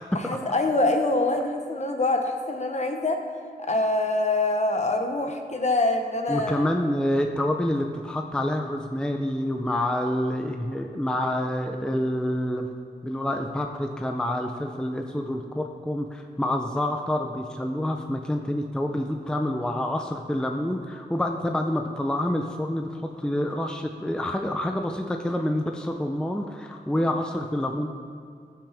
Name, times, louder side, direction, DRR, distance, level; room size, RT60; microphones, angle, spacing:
voice 1, 0.1-3.2 3.6-6.7 26.9-27.1, left 2 dB, 40° left, 4 dB, 0.9 m, -25 dB
voice 2, 6.3-12.7 13.0-27.9, left 1 dB, 5° left, 4 dB, 0.5 m, -27 dB
14.5 x 6.1 x 3.4 m, 2.3 s
wide cardioid pair, 100°, 17 cm